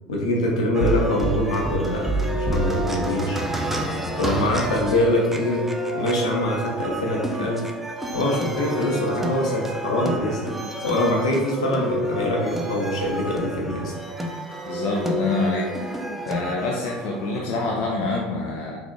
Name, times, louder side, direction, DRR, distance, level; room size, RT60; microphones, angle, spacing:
voice 1, 0.1-3.4 4.2-5.6 5.9-7.6 8.1-10.5 10.8-13.9, left 1 dB, 80° left, -2 dB, 0.8 m, -24 dB
sound 1, 0.7-17.4, right 1 dB, 5° right, 0.5 m, -29 dB
voice 2, 14.7-16.0 16.3-18.8, left 3 dB, 60° left, -1 dB, 0.5 m, -26 dB
3.8 x 2.4 x 3.1 m, 1.2 s
hypercardioid pair, 75°, 4 cm